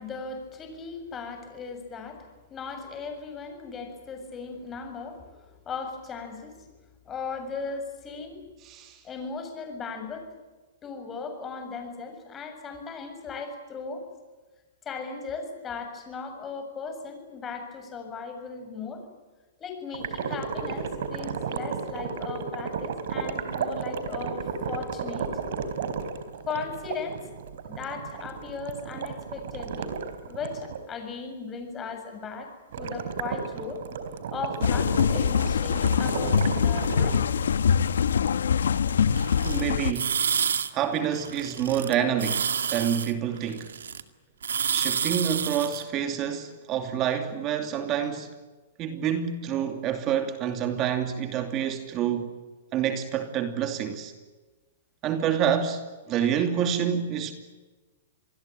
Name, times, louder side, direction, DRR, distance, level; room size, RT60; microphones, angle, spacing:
voice 1, 0.0-6.7 7.0-8.4 9.0-10.3 10.8-14.0 14.8-19.0 19.6-25.3 26.4-27.2 27.7-30.0 30.3-33.8 34.3-37.2, left 5 dB, 20° left, 7.3 m, -37 dB
voice 2, 8.7-9.0 39.4-40.2 40.7-43.7 44.7-48.3 48.8-52.3 52.7-54.1 55.0-55.8 56.1-57.3, right 9 dB, 30° right, 2.7 m, -27 dB
sound 1, 19.9-30.8 32.7-37.2, right 6 dB, 65° right, 4.2 m, -33 dB
sound 2, 34.6-39.9, left 7 dB, 85° left, 1.2 m, -23 dB
sound 3, 39.1-39.6 39.9-40.7 40.9-41.9 42.2-44.0 44.4-45.8, right 7 dB, 85° right, 2.1 m, -29 dB
27.5 x 21.0 x 9.1 m
hypercardioid pair, 140°, 0 cm